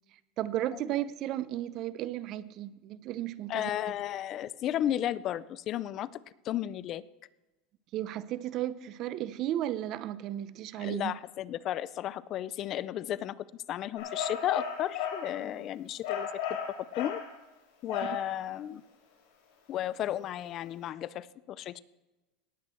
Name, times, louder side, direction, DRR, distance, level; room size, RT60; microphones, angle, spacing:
voice 1, 0.4-3.7 7.9-11.2, right 13 dB, 45° right, 0.6 m, -34 dB
voice 2, 3.5-7.0 10.8-13.3 13.7-16.6 17.0-17.2 17.8-18.8 19.7-21.8, left 12 dB, 40° left, 0.4 m, -34 dB
sound 1, 14.0-15.3 16.0-17.3 17.9-18.3, left 7 dB, 65° left, 5.1 m, -34 dB
18.5 x 8.0 x 4.4 m
supercardioid pair, 130°, 0 cm